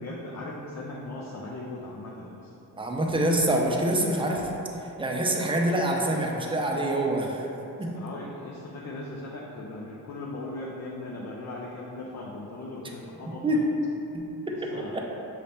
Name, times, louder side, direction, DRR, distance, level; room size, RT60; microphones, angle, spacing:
voice 1, 0.0-2.5 7.9-13.4 14.5-15.1, left 2 dB, 45° left, -3 dB, 0.5 m, -38 dB
voice 2, 2.8-4.5 5.0-7.5 7.8-7.9 13.4-13.6, right 1 dB, 15° right, 0 dB, 0.5 m, -25 dB
5.5 x 2.7 x 3.4 m, 3.0 s
cardioid pair, 105°, 37 cm